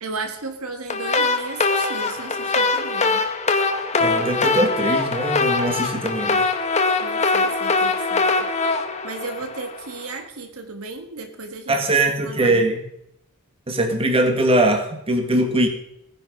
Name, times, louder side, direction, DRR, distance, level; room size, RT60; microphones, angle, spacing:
voice 1, 0.0-3.2 7.0-8.5 9.0-11.8 12.2-12.6, right 3 dB, 75° right, 6 dB, 1.6 m, -34 dB
sound 1, 0.9-10.0, left 3 dB, 30° left, 1.2 m, -22 dB
voice 2, 4.0-6.4 11.7-12.8 13.7-15.7, right 1 dB, 25° right, 4 dB, 1.9 m, -21 dB
15.5 x 10.5 x 5.3 m, 0.77 s
head